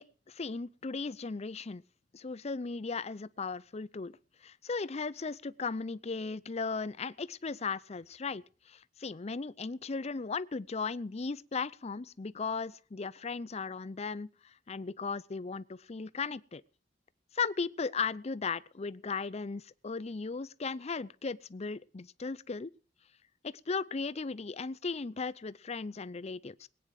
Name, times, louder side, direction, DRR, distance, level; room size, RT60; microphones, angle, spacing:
voice 1, 0.0-1.8 2.1-4.1 4.4-14.3 14.7-16.6 17.3-22.7 23.4-26.7, left 4 dB, 35° left, 0.5 m, -36 dB
21.0 x 9.4 x 4.8 m
head